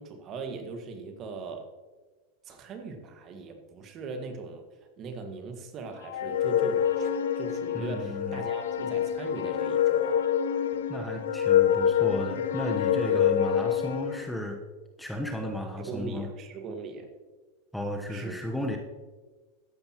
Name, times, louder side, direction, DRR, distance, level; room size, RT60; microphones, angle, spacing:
voice 1, 0.0-1.7 2.4-4.6 5.0-10.2 13.0-13.3 15.8-17.1 18.1-18.3, right 4 dB, 40° right, 5 dB, 1.7 m, -39 dB
sound 1, 6.1-14.2, left 9 dB, 85° left, 0.7 m, -26 dB
voice 2, 7.7-8.4 10.9-14.6 15.0-16.3 17.7-18.8, left 1 dB, ahead, 2 dB, 1.0 m, -34 dB
13.5 x 10.5 x 3.0 m, 1.3 s
hypercardioid pair, 115°, 0 cm